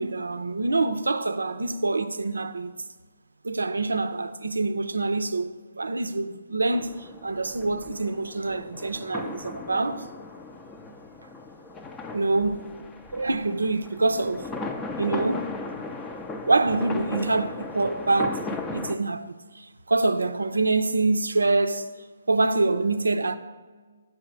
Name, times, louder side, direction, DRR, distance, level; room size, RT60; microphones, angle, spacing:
voice 1, 0.0-2.7 3.4-10.0 12.1-12.7 13.1-14.5 15.0-15.5 16.5-21.9 22.3-23.4, right 3 dB, 75° right, 0.6 m, -25 dB
sound 1, 6.7-19.0, left 3 dB, 10° left, 0.5 m, -37 dB
8.3 x 4.8 x 6.1 m
figure-of-eight pair, 135°, 0 cm